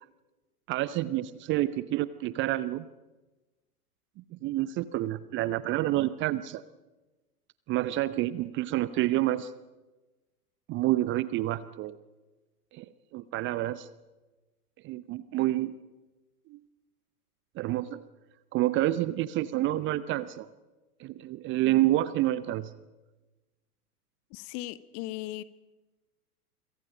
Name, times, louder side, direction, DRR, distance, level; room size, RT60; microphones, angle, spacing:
voice 1, 0.7-2.9 4.3-6.6 7.7-9.5 10.7-12.0 12.7-12.9 13.1-13.9 14.8-15.8 16.5-16.6 17.6-18.0 18.5-20.5 21.0-22.7, right 15 dB, 25° right, 17 dB, 0.7 m, -28 dB
voice 2, 24.3-25.4, left 16 dB, 35° left, 16 dB, 1.2 m, -37 dB
27.5 x 25.5 x 5.1 m, 1.1 s
figure-of-eight pair, 95°, 46 cm